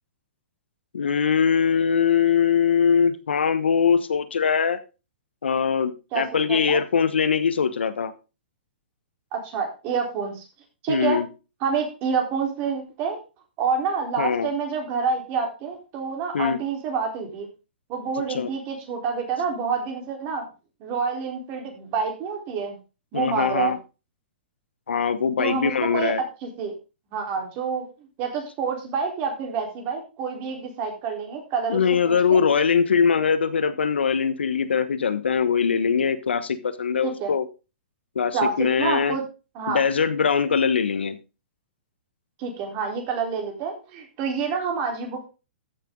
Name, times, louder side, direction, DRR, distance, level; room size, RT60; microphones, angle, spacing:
voice 1, 0.9-4.8 5.4-8.1 10.9-11.3 14.2-14.5 16.3-16.6 18.3-18.5 23.1-23.8 24.9-26.2 31.7-37.5 38.1-39.2 39.7-41.2, left 6 dB, 85° left, 13 dB, 1.1 m, -22 dB
voice 2, 6.1-6.8 9.3-10.5 10.8-11.2 11.6-13.2 13.6-17.5 17.9-20.4 20.8-22.8 23.1-23.7 25.4-26.1 26.4-26.7 27.1-27.9 28.2-32.4 37.0-37.3 38.3-39.2 39.6-39.8 42.4-45.3, right 5 dB, 35° right, 2 dB, 3.9 m, -28 dB
13.5 x 6.9 x 3.8 m, 0.31 s
hypercardioid pair, 130°, 6 cm